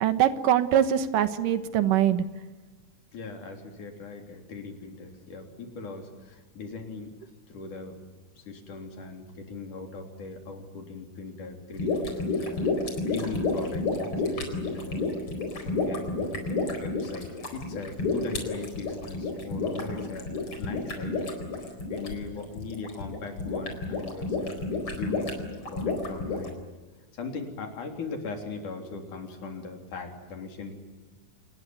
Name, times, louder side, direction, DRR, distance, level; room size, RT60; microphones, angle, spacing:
voice 1, 0.0-2.2, right 10 dB, 85° right, 11 dB, 2.9 m, -23 dB
voice 2, 3.1-7.1 7.5-8.0 8.4-15.1 15.6-20.3 20.6-21.4 21.9-24.6 25.0-25.3 25.7-26.7 27.1-30.7, left 4 dB, 70° left, 4 dB, 5.0 m, -39 dB
sound 1, 11.7-26.5, left 3 dB, 40° left, 5.1 m, -30 dB
28.0 x 19.5 x 9.4 m, 1.2 s
omnidirectional pair, 3.7 m